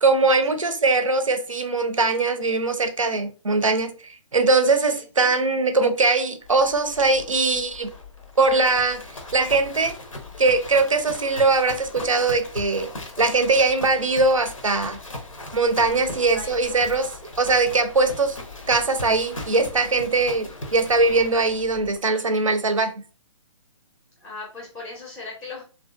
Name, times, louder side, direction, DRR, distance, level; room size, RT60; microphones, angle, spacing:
voice 1, 0.0-7.9 8.4-9.0 9.3-10.0 10.4-12.9 13.2-15.0 15.5-17.1 17.4-18.4 18.7-22.9, right 3 dB, 85° right, 0.5 m, -21 dB
Livestock farm animals working animals, 6.4-22.0, left 2 dB, 85° left, 0.7 m, -39 dB
voice 2, 8.4-8.8 16.3-16.5 24.2-25.6, left 3 dB, 5° left, 0.5 m, -38 dB
2.7 x 2.4 x 2.2 m
figure-of-eight pair, 130°, 16 cm